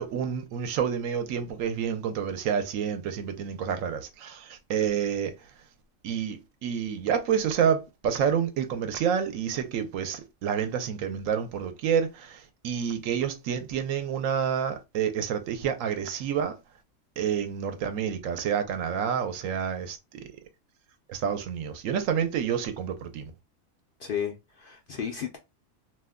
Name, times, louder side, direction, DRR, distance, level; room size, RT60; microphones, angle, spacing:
voice 1, 0.0-5.3 6.0-16.5 17.2-20.3 21.1-23.3, right 8 dB, 80° right, 1.0 m, -29 dB
voice 2, 24.0-25.4, left 8 dB, 65° left, 0.5 m, -33 dB
2.6 x 2.2 x 3.5 m
omnidirectional pair, 1.4 m